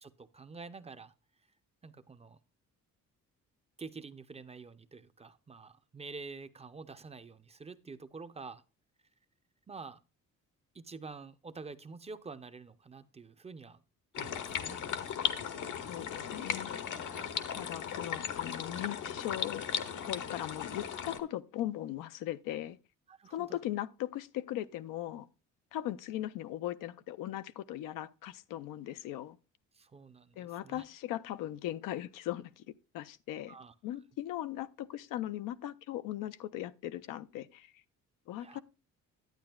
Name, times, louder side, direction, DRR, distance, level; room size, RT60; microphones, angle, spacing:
voice 1, 0.0-1.1 1.8-2.4 3.8-8.6 9.7-10.0 10.7-13.8 14.1-14.8 17.0-17.3 23.1-23.6 29.7-30.8 33.5-33.7 38.4-38.6, right 4 dB, 20° right, 0.5 m, -48 dB
sound 1, 14.1-21.2, left 8 dB, 70° left, 0.9 m, -37 dB
voice 2, 15.9-16.7 17.5-19.6 20.1-22.8 23.3-25.3 25.7-29.4 30.4-32.6 32.9-33.6 33.8-37.8 38.3-38.6, left 13 dB, 90° left, 0.5 m, -39 dB
10.5 x 8.6 x 2.3 m
cardioid pair, 90°, 31 cm